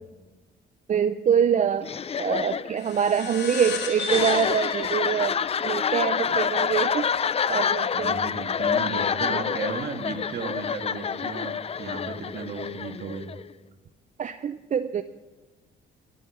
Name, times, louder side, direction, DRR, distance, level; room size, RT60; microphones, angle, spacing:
voice 1, 0.9-1.9 2.2-7.1 7.5-8.2 9.3-9.4 14.2-15.0, right 7 dB, 40° right, 12 dB, 0.5 m, -25 dB
sound 1, 1.8-13.5, left 7 dB, 30° left, 0.4 m, -27 dB
sound 2, 2.8-7.7, left 4 dB, 60° left, 2.7 m, -36 dB
voice 2, 7.9-13.3, right 4 dB, 55° right, 5 dB, 1.9 m, -34 dB
12.5 x 11.5 x 6.4 m, 1.2 s
cardioid pair, 90°, 20 cm